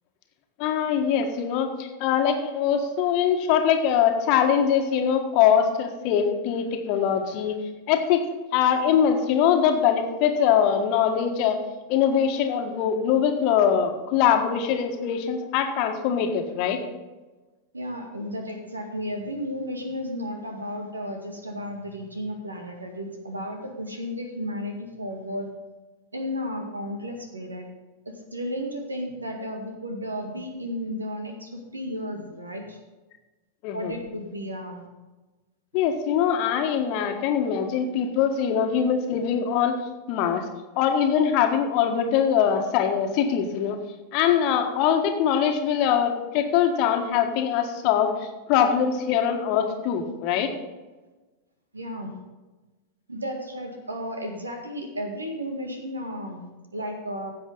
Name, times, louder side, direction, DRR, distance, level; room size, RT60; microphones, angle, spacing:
voice 1, 0.6-7.6 7.9-8.3 8.5-11.6 11.9-16.8 33.6-33.9 35.7-39.7 40.1-40.4 40.7-43.8 44.1-50.5, left 8 dB, 45° left, 5 dB, 1.6 m, -22 dB
voice 2, 17.7-25.5 26.1-27.7 28.1-32.8 33.7-34.9 51.7-52.2 53.1-57.3, equal, 80° right, 3 dB, 2.0 m, -33 dB
16.0 x 7.8 x 4.0 m, 1.2 s
figure-of-eight pair, 90°, 0 cm